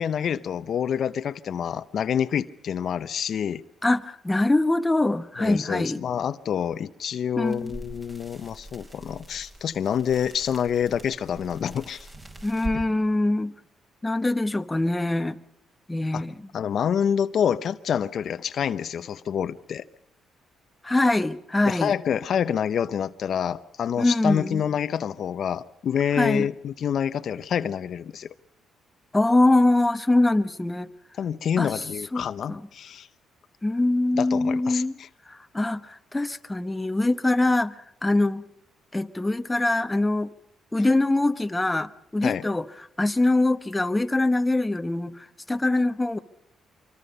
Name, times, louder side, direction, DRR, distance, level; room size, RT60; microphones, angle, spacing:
voice 1, 0.0-3.6 5.4-12.1 16.1-16.2 16.5-19.8 21.6-28.3 31.2-33.1 34.1-35.1 42.2-42.4, left 8 dB, 60° left, 0.8 m, -27 dB
voice 2, 3.8-6.0 7.4-7.8 12.4-13.5 14.0-15.4 15.9-16.4 20.8-21.9 24.0-24.6 26.2-26.5 29.1-30.9 31.6-31.8 32.1-32.2 32.5-32.6 33.6-34.9 35.3-38.4 38.9-40.3 40.7-42.6 43.0-46.2, left 2 dB, 15° left, 1.1 m, -23 dB
sound 1, 7.4-12.8, right 1 dB, 25° right, 5.2 m, -42 dB
25.0 x 24.5 x 5.4 m
cardioid pair, 90°, 0 cm